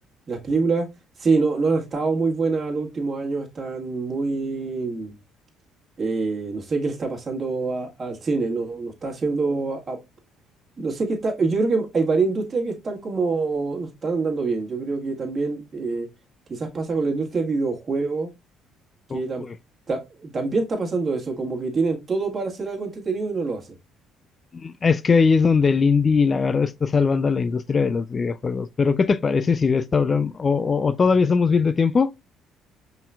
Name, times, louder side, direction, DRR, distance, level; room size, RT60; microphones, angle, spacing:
voice 1, 0.3-0.9 1.2-5.1 6.0-10.0 10.8-16.1 16.5-18.3 19.1-19.4 19.9-23.7, right 4 dB, 35° right, 1.7 m, -25 dB
voice 2, 19.1-19.5 24.5-32.1, left 5 dB, 35° left, 0.3 m, -20 dB
5.4 x 4.0 x 2.3 m
hypercardioid pair, 55°, 0 cm